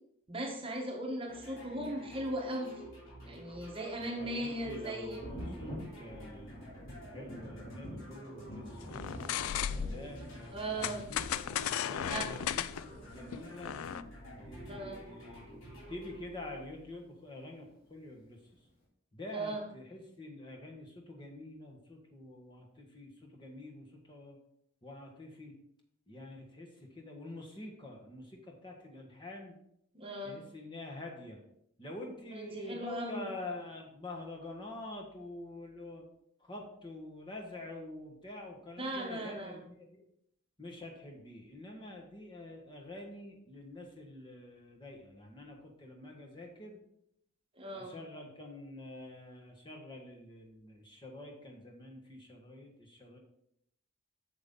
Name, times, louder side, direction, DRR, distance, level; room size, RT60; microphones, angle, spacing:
voice 1, 0.3-2.8 3.3-5.2 10.5-11.0 12.0-12.3 14.7-15.1 19.3-19.6 29.9-30.4 32.3-33.2 38.8-39.6 47.6-48.0, right 1 dB, 25° right, 1 dB, 1.1 m, -38 dB
sound 1, 1.3-17.2, right 1 dB, 65° left, 3.4 m, -51 dB
voice 2, 4.0-6.6 7.0-9.1 9.8-11.3 11.8-13.7 14.4-18.4 19.1-24.4 24.8-25.5 26.1-29.5 30.2-31.4 31.8-36.0 36.4-40.0 40.6-46.8 47.7-53.2, left 2 dB, 20° left, 0 dB, 1.4 m, -47 dB
Thunder, 5.2-16.6 17.9-18.0 18.5-18.6, equal, 45° left, 2.6 m, -48 dB
sound 2, 8.9-10.1 10.8-14.0, left 9 dB, 80° left, 0.3 m, -35 dB
8.1 x 7.0 x 3.7 m, 0.74 s
head